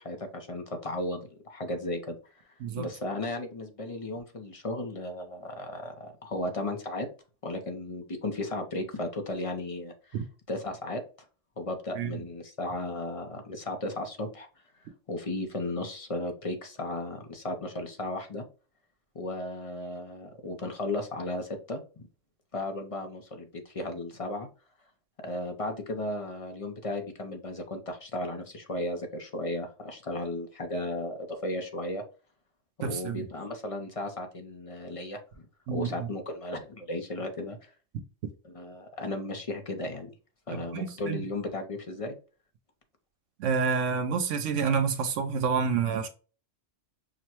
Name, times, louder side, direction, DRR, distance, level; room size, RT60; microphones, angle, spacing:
voice 1, 0.0-2.2 2.8-7.1 7.4-11.0 11.6-14.5 15.1-18.4 19.1-22.1 22.5-24.5 25.2-32.0 32.8-35.5 35.7-37.7 38.4-40.1 40.5-42.1, left 1 dB, 40° left, 0.5 m, -35 dB
voice 2, 32.8-33.2 35.7-35.9 40.5-41.2 43.4-46.1, right 6 dB, 80° right, 0.9 m, -28 dB
6.1 x 2.1 x 2.9 m
omnidirectional pair, 1.3 m